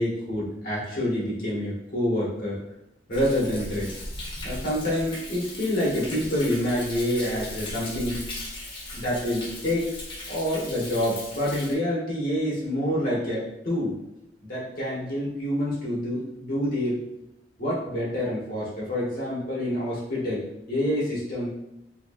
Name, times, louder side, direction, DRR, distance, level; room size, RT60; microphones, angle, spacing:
voice 1, 0.0-2.6 3.1-3.9 4.4-8.2 8.9-9.9 10.3-14.0 14.4-17.0 17.6-20.4 20.7-21.5, left 1 dB, 55° left, -7 dB, 1.2 m, -27 dB
Thunder, 3.1-11.7, left 1 dB, 30° left, 0.8 m, -38 dB
4.0 x 2.8 x 2.5 m, 0.86 s
head